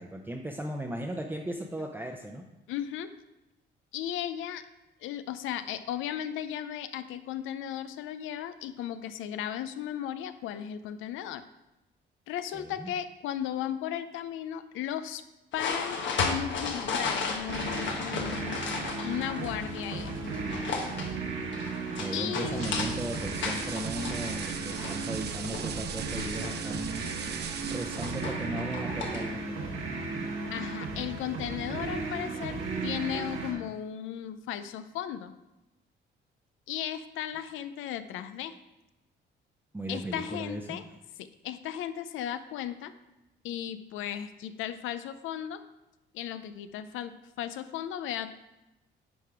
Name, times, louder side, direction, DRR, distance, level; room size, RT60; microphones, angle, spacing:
voice 1, 0.0-2.4 12.5-12.9 21.9-27.1 27.7-30.3 39.7-40.8, right 1 dB, 10° right, 1 dB, 0.6 m, -37 dB
voice 2, 2.7-3.1 3.9-4.7 5.0-11.4 12.3-15.2 15.5-20.1 22.1-22.7 30.5-35.3 36.7-38.5 39.9-40.8 41.2-42.9 43.4-45.6 46.1-48.3, left 10 dB, 90° left, 12 dB, 0.5 m, -36 dB
sound 1, 15.5-29.4, left 4 dB, 70° left, 1.1 m, -36 dB
sound 2, 17.5-33.5, right 4 dB, 75° right, 1.5 m, -35 dB
sound 3, 22.5-28.4, right 7 dB, 55° right, 0.6 m, -40 dB
10.0 x 3.7 x 4.7 m, 0.96 s
cardioid pair, 90°, 20 cm